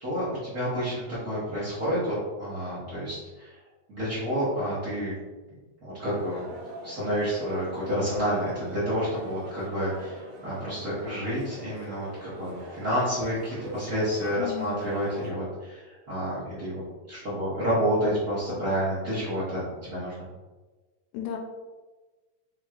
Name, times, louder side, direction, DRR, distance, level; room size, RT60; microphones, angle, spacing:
voice 1, 0.0-3.6 3.9-5.1 5.8-6.4 6.8-19.6 19.9-20.1, equal, 50° right, -9 dB, 1.1 m, -29 dB
sound 1, 6.1-15.3, right 2 dB, 70° right, 2.1 m, -43 dB
voice 2, 14.4-14.8 21.1-21.4, left 9 dB, 80° left, 2 dB, 1.9 m, -34 dB
6.0 x 3.0 x 2.4 m, 1.2 s
omnidirectional pair, 3.4 m